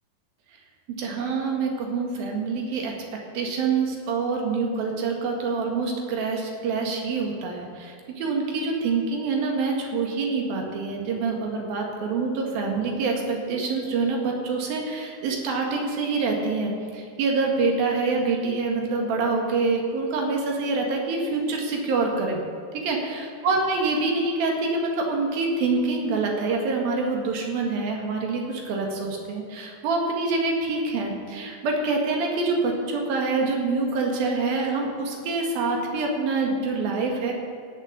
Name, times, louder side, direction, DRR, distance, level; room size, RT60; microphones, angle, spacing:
voice 1, 0.9-3.0 3.3-22.4 22.7-37.3, right 3 dB, 80° right, 1 dB, 3.6 m, -26 dB
16.5 x 8.0 x 7.4 m, 2.4 s
omnidirectional pair, 4.2 m